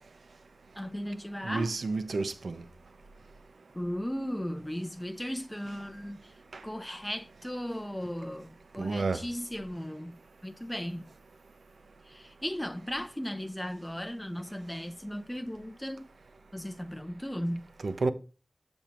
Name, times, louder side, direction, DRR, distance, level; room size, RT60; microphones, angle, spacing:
voice 1, 0.8-1.8 3.7-6.3 6.6-11.1 12.0-16.1 16.5-17.7, equal, 10° left, 0.6 m, -36 dB
voice 2, 1.4-2.6 8.8-9.2 17.8-18.1, right 3 dB, 80° right, 0.7 m, -30 dB
7.2 x 5.4 x 4.4 m
cardioid pair, 50°, 0 cm